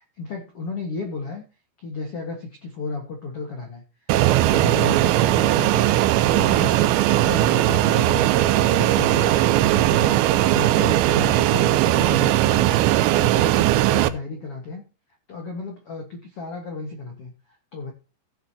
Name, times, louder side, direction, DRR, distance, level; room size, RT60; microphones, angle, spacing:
voice 1, 0.2-1.4 1.8-14.8 15.3-17.9, left 3 dB, 90° left, 3 dB, 1.3 m, -34 dB
Fixed-wing aircraft airplane, 4.1-14.1, right 14 dB, 80° right, 2.7 m, -19 dB
16.0 x 7.6 x 2.9 m, 0.33 s
omnidirectional pair, 5.6 m